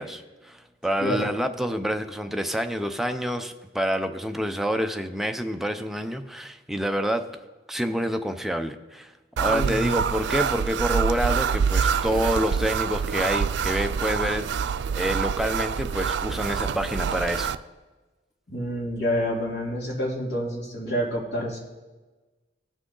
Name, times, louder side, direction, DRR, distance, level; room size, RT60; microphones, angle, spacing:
voice 1, 0.0-7.3 7.7-9.1 9.4-17.6, equal, ahead, 6 dB, 0.5 m, -27 dB
voice 2, 1.0-1.3 9.4-9.9 18.5-21.6, equal, 65° left, -3 dB, 3.1 m, -28 dB
sound 1, 9.4-17.6, right 6 dB, 70° right, 0.3 m, -26 dB
18.0 x 6.2 x 3.8 m, 1.2 s
head